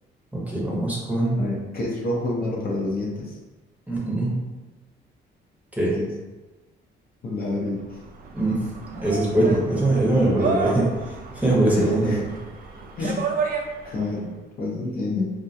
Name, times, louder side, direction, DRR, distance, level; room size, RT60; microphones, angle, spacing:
voice 1, 0.3-1.4 3.9-4.3 5.8-6.0 8.3-8.6 9.0-10.9 11.3-12.2 13.0-13.1, right 1 dB, 5° right, -5 dB, 0.7 m, -22 dB
voice 2, 1.4-3.4 5.9-6.1 7.2-7.8 10.4-10.6 11.7-12.2 13.0-13.3 13.8-14.3 14.6-15.3, left 2 dB, 50° left, -3 dB, 0.6 m, -28 dB
sound 1, 7.8-14.1, right 4 dB, 45° right, 0.4 m, -31 dB
2.3 x 2.1 x 2.6 m, 1.2 s
cardioid pair, 90°, 20 cm